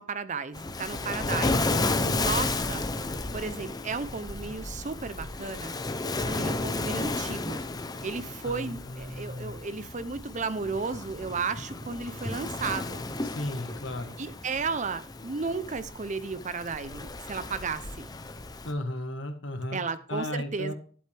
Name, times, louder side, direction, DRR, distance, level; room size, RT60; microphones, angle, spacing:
voice 1, 0.0-2.9 3.3-5.8 6.2-7.6 8.0-13.0 14.2-18.1 19.7-20.7, right 4 dB, 40° right, 13 dB, 0.6 m, -34 dB
Waves surf, 0.5-18.7, left 2 dB, 20° left, 0.7 m, -33 dB
voice 2, 8.4-9.6 13.2-14.2 18.6-19.8 20.1-20.7, left 1 dB, 70° left, 7 dB, 1.5 m, -35 dB
11.5 x 7.9 x 3.4 m, 0.44 s
head